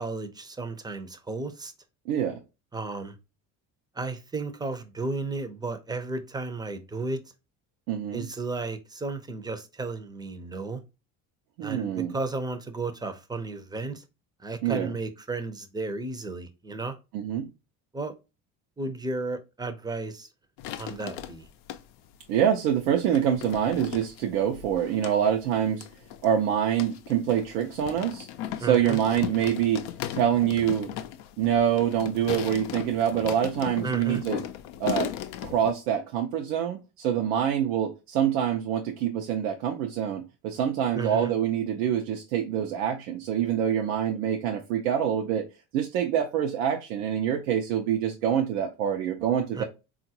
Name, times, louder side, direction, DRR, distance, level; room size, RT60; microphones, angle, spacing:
voice 1, 0.0-1.7 2.7-3.2 4.0-7.2 8.1-10.8 11.6-14.0 14.4-17.0 17.9-18.1 18.8-20.3 20.8-21.5 28.6-29.0 33.8-34.2 40.9-41.3 49.5-49.6, right 3 dB, 10° right, 0.5 m, -33 dB
voice 2, 2.1-2.4 7.9-8.3 11.6-12.1 14.6-14.9 17.1-17.5 22.3-25.8 26.2-28.3 28.6-29.8 30.1-30.9 31.4-34.4 34.8-35.1 35.4-45.4 45.7-49.6, right 9 dB, 85° right, 0.6 m, -26 dB
sound 1, 20.6-22.1 22.8-35.7, left 12 dB, 75° left, 0.5 m, -37 dB
3.7 x 2.4 x 2.7 m
supercardioid pair, 80°, 41 cm